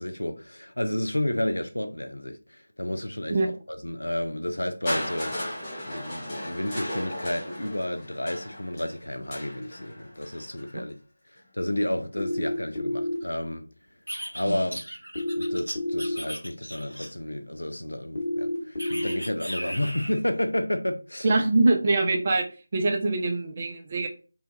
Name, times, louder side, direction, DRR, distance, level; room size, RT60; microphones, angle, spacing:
voice 1, 0.0-10.9 11.3-13.7 14.3-14.8 15.4-21.3, left 1 dB, 70° left, 0.4 m, -31 dB
Crushing, 4.9-10.8 11.7-11.8, equal, 15° left, 0.6 m, -36 dB
sound 1, 12.2-13.2 15.1-16.2 18.1-19.2, left 1 dB, 45° left, 1.1 m, -29 dB
sound 2, 14.1-17.3 18.8-20.3, equal, 85° right, 0.6 m, -37 dB
voice 2, 21.2-22.5 22.7-24.1, right 2 dB, 25° right, 0.4 m, -23 dB
2.7 x 2.2 x 2.7 m
figure-of-eight pair, 165°, 0 cm